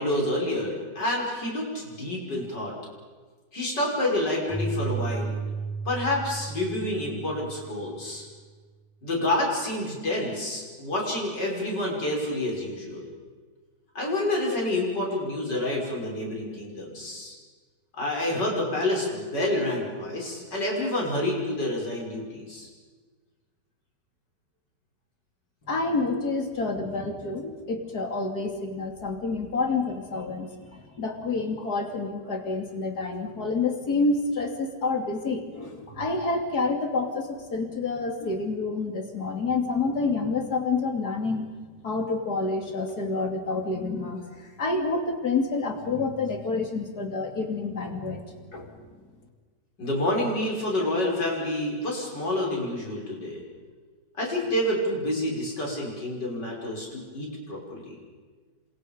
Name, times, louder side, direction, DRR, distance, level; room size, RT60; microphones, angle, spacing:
voice 1, 0.0-2.7 3.5-5.3 5.9-8.2 9.0-13.1 13.9-17.3 17.9-22.7 49.8-53.4 54.2-57.9, left 1 dB, 85° left, -2 dB, 6.5 m, -28 dB
Keyboard (musical), 4.5-8.0, right 4 dB, ahead, 4.1 m, -33 dB
voice 2, 25.7-41.4 41.8-48.2 48.5-48.8, left 3 dB, 65° left, 3 dB, 3.3 m, -28 dB
29.0 x 26.0 x 5.3 m, 1.4 s
omnidirectional pair, 1.8 m